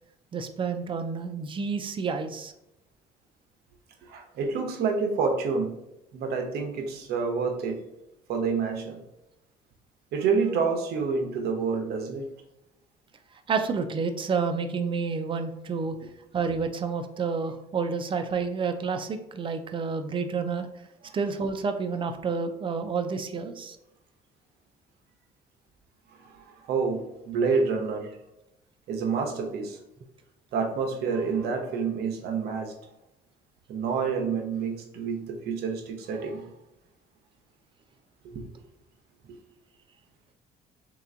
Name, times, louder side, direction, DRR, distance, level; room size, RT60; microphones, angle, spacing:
voice 1, 0.3-2.5 13.5-15.9 16.3-20.7 21.1-23.8, right 5 dB, 30° right, 8 dB, 0.5 m, -29 dB
voice 2, 4.0-5.7 6.1-7.8 8.3-9.0 10.1-12.3 26.3-28.1 28.9-29.8 30.5-32.7 33.7-36.5 38.2-38.4, right 5 dB, 70° right, 3 dB, 0.9 m, -28 dB
3.3 x 3.0 x 3.8 m, 0.87 s
cardioid pair, 110°, 17 cm